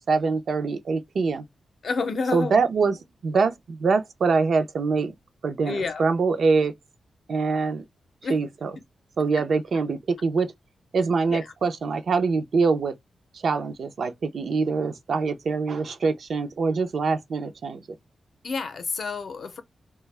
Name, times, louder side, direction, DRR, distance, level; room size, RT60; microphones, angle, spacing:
voice 1, 0.1-1.4 2.3-5.1 5.4-6.7 7.3-7.8 8.3-8.7 9.2-10.5 10.9-12.9 13.3-17.8, right 4 dB, 65° right, 0.5 m, -24 dB
voice 2, 1.8-2.6 5.7-6.0 8.2-8.4 11.3-11.5 18.4-19.6, left 4 dB, 60° left, 0.5 m, -29 dB
2.2 x 2.0 x 3.1 m
cardioid pair, 95°, 0 cm